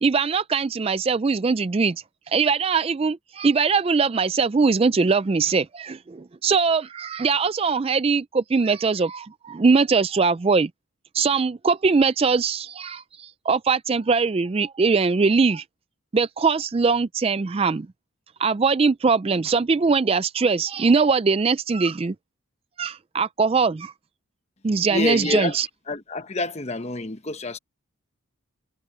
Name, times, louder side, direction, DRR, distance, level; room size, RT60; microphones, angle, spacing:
voice 1, 0.0-10.7 11.1-15.6 16.1-17.9 18.4-22.1 22.8-23.9 24.6-25.7, right 4 dB, 25° right, 0.3 m, -21 dB
voice 2, 24.9-25.6 25.9-27.6, left 2 dB, 30° left, 1.1 m, -27 dB
head